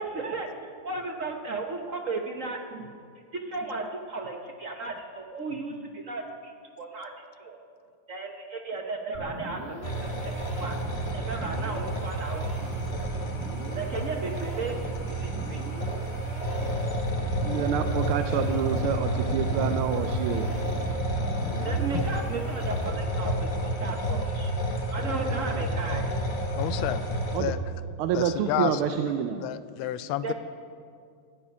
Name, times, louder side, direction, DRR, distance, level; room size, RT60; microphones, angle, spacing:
voice 1, 0.0-2.9 3.3-7.6 8.1-10.8 11.1-12.5 13.7-15.8 21.6-24.6 24.9-26.1 30.2-30.3, right 3 dB, 55° right, 3 dB, 0.9 m, -35 dB
sound 1, 9.1-23.2, right 1 dB, 30° right, 1.4 m, -41 dB
sound 2, 9.8-27.4, right 1 dB, 30° left, 1.1 m, -30 dB
voice 2, 17.4-20.5 27.3-27.5 28.0-29.5, right 9 dB, 85° right, 7 dB, 1.5 m, -28 dB
voice 3, 26.5-27.0 27.4-27.6 28.1-28.8 29.4-30.3, left 13 dB, 75° left, 13 dB, 1.3 m, -30 dB
14.0 x 7.3 x 9.9 m, 2.2 s
omnidirectional pair, 2.4 m